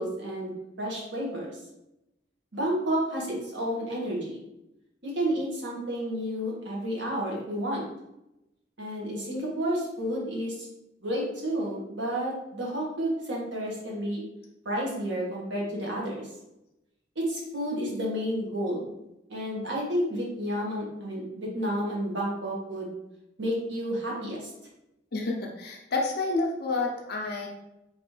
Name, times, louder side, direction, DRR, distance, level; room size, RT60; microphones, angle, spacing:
voice 1, 0.0-1.5 2.5-4.4 5.0-7.8 8.8-10.7 11.0-14.2 14.6-16.3 17.1-18.9 19.3-22.9 23.4-24.5, equal, 75° right, -3 dB, 1.4 m, -31 dB
voice 2, 25.1-27.5, left 3 dB, 55° left, -1 dB, 0.6 m, -29 dB
4.2 x 2.9 x 3.2 m, 0.90 s
head